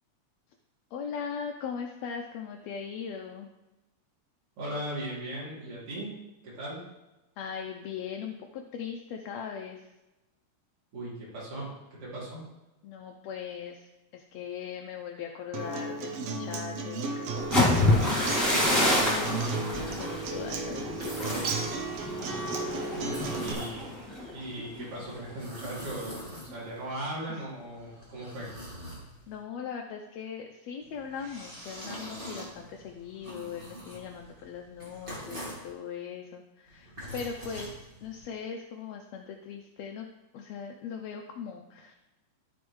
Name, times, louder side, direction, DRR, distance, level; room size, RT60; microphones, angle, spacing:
voice 1, 0.9-3.5 7.4-9.9 12.8-21.8 22.7-23.1 27.3-27.5 29.3-40.1 40.3-41.9, left 7 dB, 75° left, 1 dB, 1.7 m, -40 dB
voice 2, 4.6-6.1 6.4-6.8 10.9-11.7 12.0-12.4 22.9-24.0 24.3-28.5, right 1 dB, 50° right, -7 dB, 3.6 m, -38 dB
Acoustic guitar, 15.5-23.5, right 3 dB, 70° right, 1.6 m, -34 dB
sound 1, 17.4-25.2 25.6-25.9 26.3-26.7, left 1 dB, 10° left, 2.2 m, -28 dB
Sipping Slurping, 20.8-21.7 23.0-24.0 25.1-26.8 27.6-29.4 30.8-35.7 36.7-38.3, equal, 20° right, 1.9 m, -43 dB
13.5 x 5.1 x 3.1 m, 1.0 s
omnidirectional pair, 3.5 m